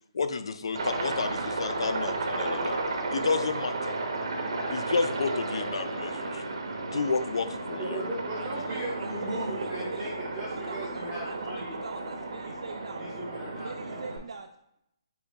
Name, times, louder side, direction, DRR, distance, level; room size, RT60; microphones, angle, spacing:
voice 1, 0.1-2.8 3.1-3.9 4.7-6.5 6.9-7.8, left 4 dB, 70° left, 10 dB, 0.4 m, -31 dB
Aircraft, 0.8-14.2, right 2 dB, 65° right, 0.7 m, -33 dB
voice 2, 7.8-11.7 12.4-12.5 13.0-13.7, equal, 5° right, -10 dB, 0.7 m, -37 dB
voice 3, 8.4-10.0 10.5-13.0 13.6-14.5, right 4 dB, 80° right, 4 dB, 0.3 m, -43 dB
4.1 x 2.9 x 3.6 m, 0.78 s
hypercardioid pair, 175°, 3 cm